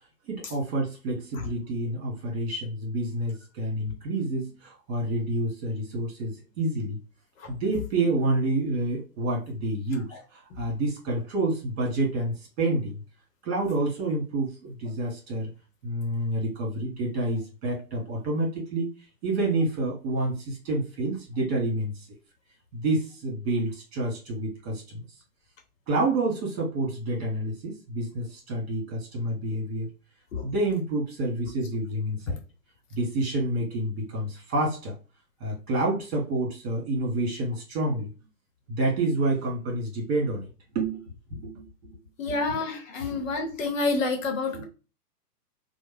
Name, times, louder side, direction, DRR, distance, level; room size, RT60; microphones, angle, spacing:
voice 1, 0.3-7.0 7.5-13.0 13.4-15.5 15.8-18.9 19.2-22.1 22.7-25.0 25.9-29.9 30.4-32.4 32.9-35.0 35.4-38.1 38.7-40.5 40.8-41.0 41.3-41.9 42.3-42.6 43.1-43.2 44.5-44.6, right 2 dB, 40° right, 1.8 m, -28 dB
voice 2, 42.2-44.6, left 3 dB, 55° left, 0.9 m, -28 dB
3.2 x 2.2 x 3.5 m
hypercardioid pair, 130°, 49 cm